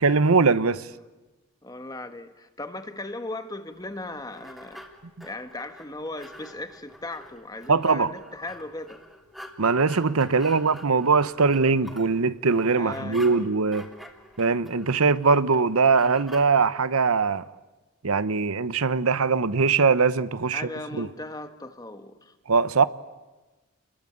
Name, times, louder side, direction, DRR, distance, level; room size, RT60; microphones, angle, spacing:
voice 1, 0.0-0.9 7.7-8.1 9.6-13.9 14.4-17.4 18.0-20.7 21.0-21.1 22.5-22.8, right 4 dB, 90° right, 0.9 m, -21 dB
voice 2, 1.6-4.8 5.2-9.0 10.3-10.5 12.7-13.5 20.5-22.3, left 2 dB, 15° left, 1.5 m, -37 dB
sound 1, 3.8-16.5, equal, ahead, 2.9 m, -47 dB
29.5 x 22.0 x 8.8 m
head